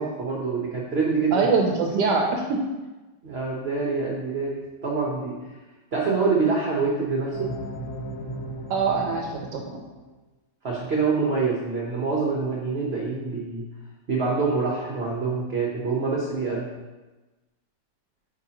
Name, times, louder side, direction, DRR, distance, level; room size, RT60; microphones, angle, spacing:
voice 1, 0.0-1.5 3.2-5.4 5.9-7.5 10.6-13.6 14.1-16.7, right 4 dB, 45° right, -3 dB, 0.9 m, -26 dB
voice 2, 1.3-2.7 8.7-9.8, right 4 dB, 75° right, 1 dB, 1.2 m, -24 dB
sound 1, 7.3-10.1, right 1 dB, 45° left, 1.2 m, -36 dB
8.8 x 5.0 x 2.9 m, 1.2 s
omnidirectional pair, 2.0 m